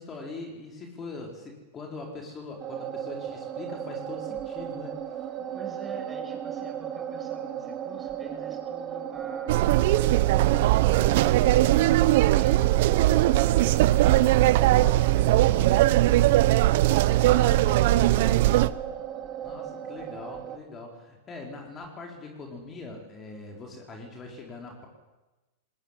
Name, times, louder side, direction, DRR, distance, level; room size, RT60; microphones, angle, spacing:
voice 1, 0.0-4.9 17.2-18.1 19.4-24.9, left 3 dB, 25° left, 1 dB, 4.4 m, -41 dB
sound 1, 2.6-20.6, right 9 dB, 35° right, 2.8 m, -36 dB
voice 2, 5.5-16.5 17.9-18.8, right 3 dB, 15° right, 3 dB, 6.9 m, -47 dB
sound 2, 9.5-18.7, right 16 dB, 60° right, 0.9 m, -20 dB
21.0 x 17.5 x 9.9 m, 1.1 s
hypercardioid pair, 110°, 0 cm